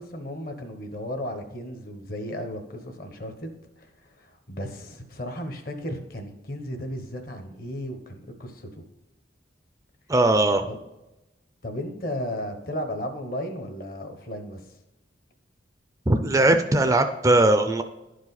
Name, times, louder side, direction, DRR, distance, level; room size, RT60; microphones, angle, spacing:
voice 1, 0.0-8.7 10.7-10.8 11.6-14.7, equal, 50° left, 6 dB, 1.1 m, -35 dB
voice 2, 10.1-10.7 16.1-17.8, right 2 dB, 15° right, 8 dB, 0.4 m, -19 dB
11.0 x 4.9 x 4.0 m, 0.98 s
head